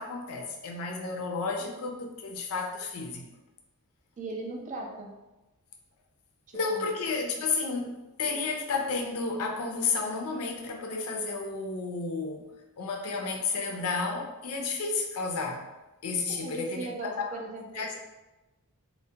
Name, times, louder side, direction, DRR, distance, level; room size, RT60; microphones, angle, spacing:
voice 1, 0.0-3.2 6.5-12.5 12.8-15.6 16.0-16.9 17.2-17.3 17.7-18.0, left 4 dB, 70° left, 1 dB, 0.4 m, -32 dB
voice 2, 4.2-5.1 6.5-6.9 16.3-18.0, right 2 dB, 35° right, 1 dB, 0.3 m, -38 dB
2.2 x 2.1 x 2.7 m, 1.1 s
head